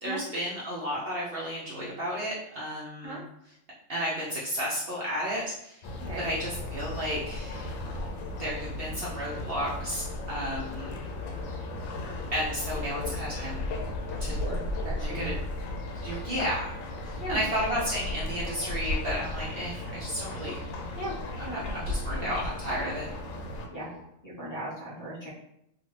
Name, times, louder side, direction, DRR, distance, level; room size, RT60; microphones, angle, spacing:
voice 1, 0.0-3.2 3.9-5.8 6.2-7.7 8.4-10.9 12.3-13.6 14.2-14.3 14.9-15.4 15.9-20.6 21.4-23.1 23.8-24.0, equal, 55° right, -6 dB, 0.7 m, -33 dB
sound 1, 5.8-23.7, left 1 dB, 80° left, 1.0 m, -35 dB
voice 2, 14.4-15.3 17.2-17.4 21.0-22.3 23.7-23.9 24.2-25.3, right 1 dB, 15° left, -10 dB, 0.8 m, -38 dB
2.6 x 2.4 x 3.1 m, 0.76 s
omnidirectional pair, 1.4 m